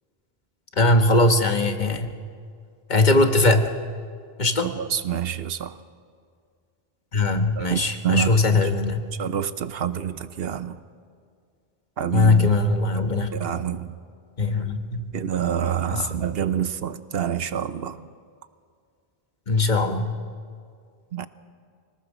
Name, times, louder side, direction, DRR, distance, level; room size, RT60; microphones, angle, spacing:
voice 1, 0.8-2.1 2.9-3.6 4.4-4.7 7.1-9.0 12.1-13.4 14.4-15.1 15.9-16.0 19.5-20.1, left 2 dB, 45° left, 1.4 m, -20 dB
voice 2, 4.6-5.8 7.6-8.7 9.1-10.8 12.0-12.5 13.3-14.0 15.1-18.1 21.1-21.3, right 9 dB, 70° right, 1.0 m, -27 dB
25.5 x 19.0 x 6.2 m
omnidirectional pair, 1.1 m